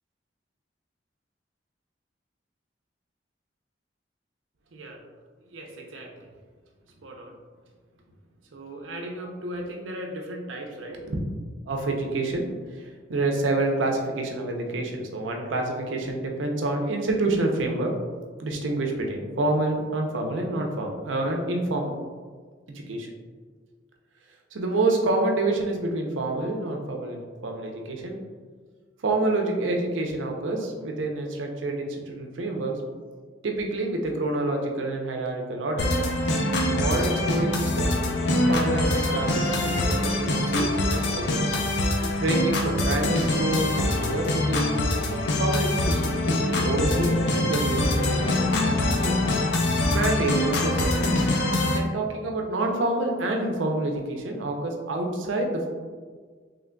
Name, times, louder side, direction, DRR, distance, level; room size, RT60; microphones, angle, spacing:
voice 1, 5.5-6.1 7.0-7.4 8.5-11.2 11.7-12.5 12.8-17.9 18.4-21.9 22.7-23.1 24.5-28.2 29.0-32.8 33.4-35.9 36.7-37.9 38.5-41.6 42.2-44.8 45.4-49.3 49.9-51.2 51.7-55.7, right 2 dB, 85° right, 2 dB, 0.5 m, -28 dB
sound 1, 35.8-51.8, left 1 dB, 65° left, 0.5 m, -24 dB
3.7 x 3.2 x 2.2 m, 1.5 s
head